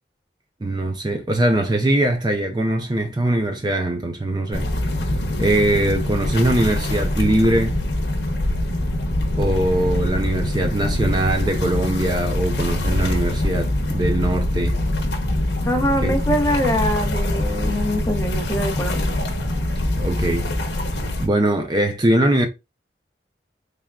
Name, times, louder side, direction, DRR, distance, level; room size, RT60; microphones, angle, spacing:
voice 1, 0.6-4.7 5.4-7.7 9.4-14.7 16.0-16.1 20.0-20.4 21.2-22.5, right 1 dB, 25° right, 0.5 m, -21 dB
sound 1, 4.5-21.3, left 1 dB, 75° left, 0.9 m, -23 dB
voice 2, 15.7-19.1, equal, 15° left, 0.7 m, -23 dB
3.5 x 3.4 x 2.3 m
head